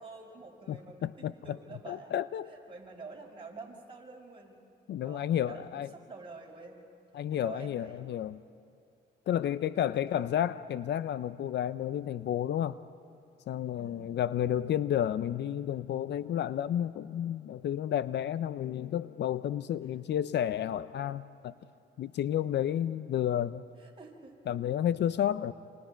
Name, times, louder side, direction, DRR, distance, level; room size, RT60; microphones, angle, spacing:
voice 1, 0.0-2.2 2.5-4.6 5.0-6.9 7.4-8.2 9.5-10.3 13.8-14.3 21.5-21.6 23.8-24.6, right 3 dB, 25° right, 5.6 m, -48 dB
voice 2, 0.7-1.3 1.9-2.5 4.9-5.9 7.1-8.4 9.3-12.8 13.5-21.5 22.0-23.7 24.5-25.5, left 10 dB, 60° left, 0.5 m, -31 dB
28.0 x 27.5 x 4.5 m
cardioid pair, 90°, 20 cm